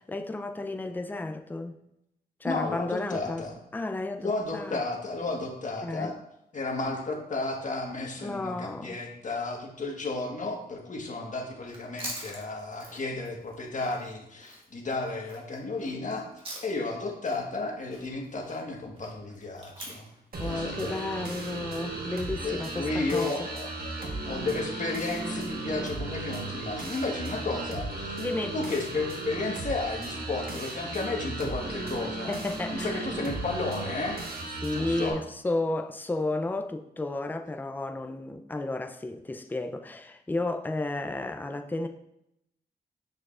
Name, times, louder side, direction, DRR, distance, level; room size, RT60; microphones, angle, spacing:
voice 1, 0.1-1.7 2.4-3.4 3.7-4.8 5.8-6.1 8.2-9.0 20.4-23.3 28.2-28.6 32.3-33.1 34.6-41.9, left 2 dB, 10° left, 5 dB, 0.5 m, -32 dB
voice 2, 2.4-3.5 4.2-6.1 6.5-16.2 16.6-20.1 20.4-21.0 22.4-28.2 28.5-32.4 32.7-34.2 34.7-35.2, left 3 dB, 45° left, 1 dB, 1.4 m, -33 dB
Chewing mastication, 11.6-17.0 17.2-21.6, right 1 dB, 30° right, 1.7 m, -45 dB
sound 1, 20.3-35.1, right 2 dB, 60° right, 1.3 m, -36 dB
7.0 x 6.4 x 2.5 m, 0.81 s
wide cardioid pair, 100°, 17 cm